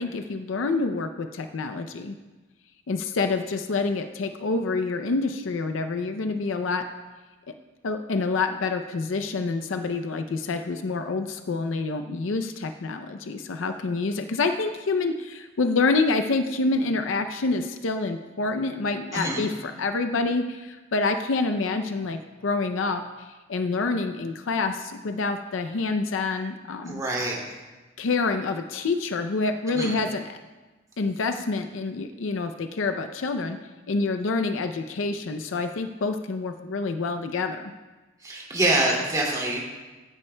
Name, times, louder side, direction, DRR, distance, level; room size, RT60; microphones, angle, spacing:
voice 1, 0.0-2.1 2.9-6.8 7.8-27.0 28.0-30.4 31.0-33.6 33.9-37.7, left 3 dB, 70° left, 7 dB, 0.5 m, -27 dB
voice 2, 19.1-19.4 26.9-27.4 29.7-30.0 38.2-39.6, right 1 dB, 20° right, -3 dB, 2.4 m, -25 dB
15.5 x 11.0 x 2.2 m, 1.2 s
head